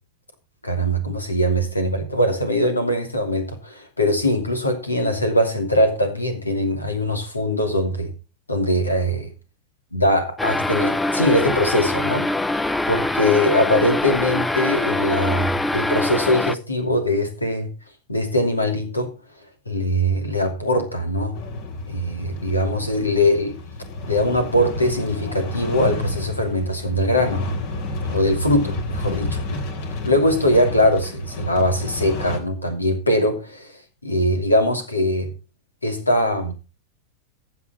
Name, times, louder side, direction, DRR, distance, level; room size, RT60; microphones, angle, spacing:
voice 1, 0.6-8.1 8.5-9.3 9.9-12.3 12.9-17.7 18.1-19.1 19.7-21.4 21.9-23.6 24.1-27.5 28.1-29.6 30.0-35.3 35.8-36.5, left 1 dB, 85° left, 2.8 m, -21 dB
sound 1, 10.4-16.6, left 2 dB, 10° left, 0.6 m, -23 dB
sound 2, 21.3-32.4, left 2 dB, 55° left, 3.1 m, -30 dB
15.0 x 8.5 x 4.3 m
figure-of-eight pair, 90°, 0 cm